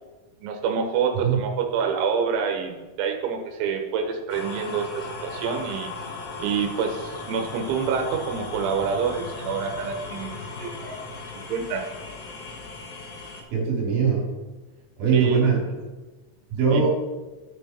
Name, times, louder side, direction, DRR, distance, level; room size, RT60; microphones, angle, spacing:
voice 1, 0.4-5.9 6.4-11.0 11.5-11.8 15.1-15.4 16.7-16.8, right 6 dB, 85° right, 3 dB, 3.3 m, -27 dB
sound 1, 4.3-13.4, left 3 dB, 65° left, 2.8 m, -37 dB
voice 2, 13.5-14.3 15.0-15.6 16.5-16.9, right 6 dB, 55° right, -1 dB, 4.0 m, -21 dB
13.5 x 6.1 x 4.2 m, 1.2 s
omnidirectional pair, 5.3 m